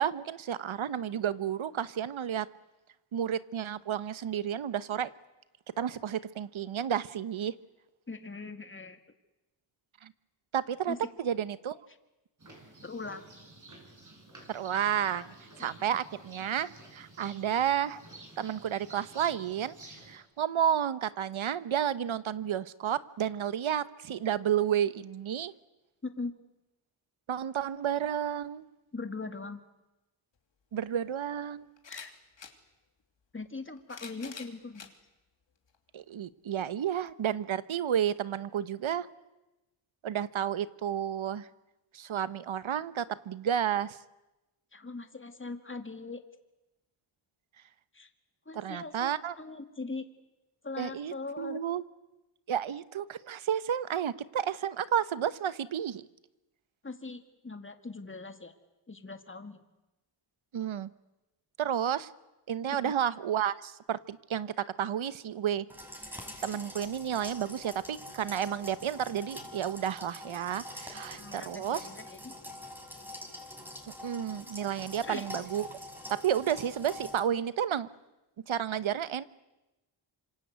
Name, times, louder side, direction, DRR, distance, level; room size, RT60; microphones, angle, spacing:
voice 1, 0.0-2.5 3.1-5.1 5.8-7.5 10.0-10.1 10.5-11.8 14.5-15.3 15.6-18.0 18.4-25.5 27.3-28.7 30.7-31.7 35.9-39.1 40.0-41.5 41.9-44.0 48.5-49.3 50.8-51.8 52.5-56.1 60.5-60.9 61.6-62.1 62.5-65.7 66.4-71.9 74.0-75.7 76.1-77.9 78.5-79.2, right 9 dB, 70° right, 16 dB, 1.1 m, -31 dB
voice 2, 8.1-9.0 10.9-11.0 12.8-13.2 15.2-16.0 26.0-26.3 28.9-29.6 31.9-32.1 33.3-34.9 44.7-46.2 47.9-48.1 48.5-50.1 50.6-51.6 56.8-58.5 58.9-59.6 62.7-62.9 70.9-72.3 75.0-75.3, left 3 dB, 25° left, 7 dB, 2.4 m, -41 dB
sound 1, 12.4-20.2, right 2 dB, 35° right, 6.8 m, -52 dB
sound 2, 30.4-30.5 31.8-32.6 33.6-34.9 35.7-35.8 37.1-37.2, left 6 dB, 60° left, 3.0 m, -47 dB
sound 3, 65.7-77.2, left 1 dB, 5° right, 6.0 m, -45 dB
27.0 x 26.0 x 8.2 m, 1.0 s
cardioid pair, 70°, 50 cm